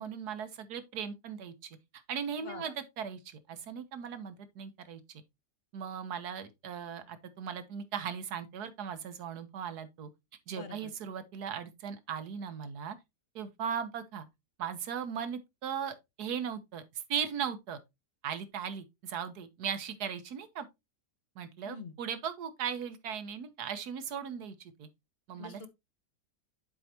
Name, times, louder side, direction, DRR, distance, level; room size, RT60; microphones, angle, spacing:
voice 1, 0.0-5.2 5.7-10.1 10.5-13.0 13.3-14.2 14.6-16.8 17.1-17.8 18.2-20.7 21.4-24.9 25.3-25.6, right 7 dB, 70° right, 1.5 m, -38 dB
voice 2, 2.4-2.7 10.5-10.9 21.6-22.0 25.4-25.7, left 5 dB, 45° left, 0.9 m, -45 dB
10.5 x 4.7 x 2.9 m
omnidirectional pair, 1.8 m